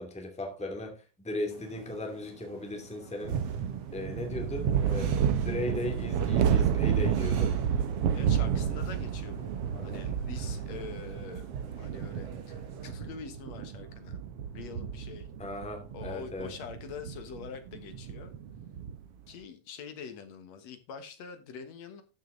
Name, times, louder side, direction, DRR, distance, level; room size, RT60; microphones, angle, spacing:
voice 1, 0.0-3.4 3.9-7.5 9.7-10.0 10.4-10.5 15.4-16.5, left 1 dB, ahead, 1.8 m, -37 dB
sound 1, 1.5-12.9, right 6 dB, 55° right, 2.6 m, -51 dB
sound 2, 3.2-19.1, right 8 dB, 85° right, 1.3 m, -31 dB
voice 2, 8.1-9.5 9.8-11.5 11.8-14.2 14.5-15.3 15.9-18.4 19.3-22.0, left 6 dB, 60° left, 2.3 m, -44 dB
13.0 x 6.5 x 3.9 m
omnidirectional pair, 3.8 m